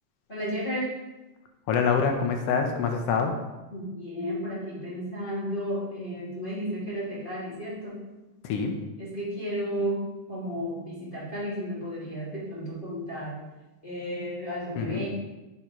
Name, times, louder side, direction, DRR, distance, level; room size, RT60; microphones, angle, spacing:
voice 1, 0.3-0.9 3.7-8.0 9.0-13.4 13.8-15.1, equal, 20° left, -9 dB, 1.5 m, -33 dB
voice 2, 1.7-3.3 8.4-8.7 14.8-15.1, left 5 dB, 75° left, 4 dB, 1.5 m, -25 dB
7.6 x 4.2 x 5.0 m, 1.1 s
omnidirectional pair, 3.5 m